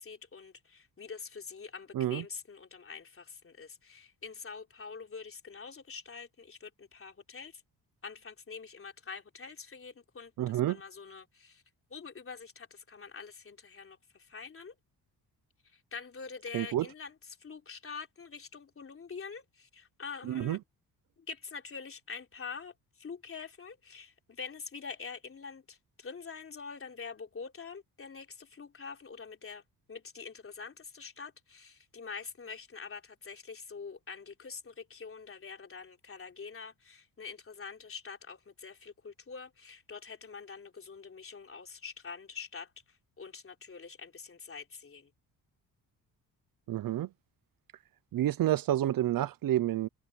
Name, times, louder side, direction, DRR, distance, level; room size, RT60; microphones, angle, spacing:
voice 1, 0.0-7.6 8.0-11.6 11.9-14.8 15.6-20.6 21.2-29.6 29.9-45.1, left 5 dB, 35° left, 3.7 m, -45 dB
voice 2, 10.4-10.8 16.5-16.8 20.3-20.6 46.7-47.1 48.1-49.9, right 13 dB, 60° right, 0.7 m, -29 dB
cardioid pair, 110°, 38 cm